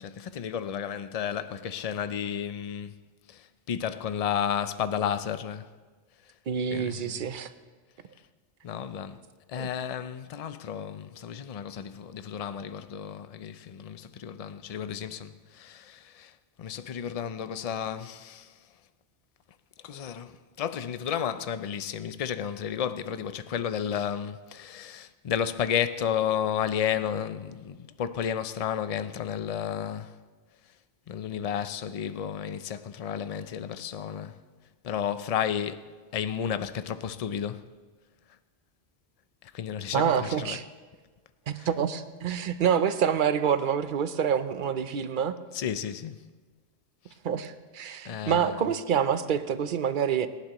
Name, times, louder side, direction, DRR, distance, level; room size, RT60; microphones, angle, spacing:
voice 1, 0.0-2.9 3.3-5.7 6.7-7.2 8.6-9.2 9.5-16.3 16.6-18.5 19.8-30.1 31.1-34.4 34.8-35.8 36.1-37.6 39.5-40.6 41.6-41.8 45.5-46.2 48.0-48.7, left 8 dB, 45° left, 0.5 m, -32 dB
voice 2, 6.5-7.5 9.6-9.7 39.9-40.6 41.5-45.4 47.2-50.3, right 8 dB, 55° right, 0.8 m, -27 dB
24.5 x 11.5 x 3.0 m
omnidirectional pair, 1.1 m